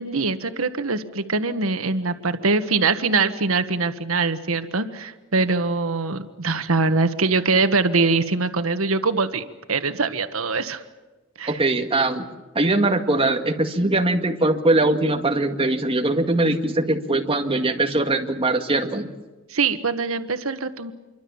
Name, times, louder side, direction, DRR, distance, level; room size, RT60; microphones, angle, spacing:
voice 1, 0.0-10.8 11.4-11.6 19.5-20.9, right 3 dB, 90° right, 10 dB, 1.4 m, -23 dB
voice 2, 11.5-12.3 12.6-19.1, right 2 dB, 25° right, 5 dB, 2.0 m, -21 dB
27.5 x 23.5 x 7.2 m, 1.2 s
head